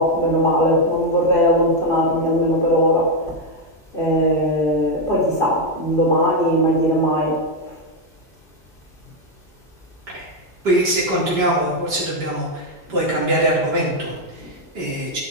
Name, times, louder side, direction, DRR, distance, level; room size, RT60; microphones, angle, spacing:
voice 1, 0.0-3.1 3.9-7.4, equal, 30° left, -2 dB, 3.6 m, -18 dB
voice 2, 10.6-15.2, right 1 dB, 80° right, -7 dB, 4.6 m, -22 dB
14.0 x 10.5 x 5.3 m, 1.3 s
omnidirectional pair, 1.8 m